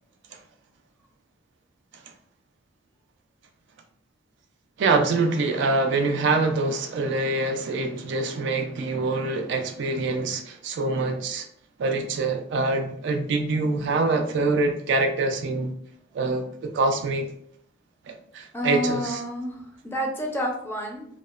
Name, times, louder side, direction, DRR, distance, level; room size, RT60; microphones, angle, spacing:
voice 1, 4.8-11.5 11.8-15.7 16.1-17.3 18.1-19.2, right 3 dB, 65° right, 5 dB, 0.3 m, -25 dB
voice 2, 18.5-21.1, equal, 10° left, 0 dB, 0.4 m, -29 dB
2.8 x 2.0 x 2.3 m, 0.65 s
head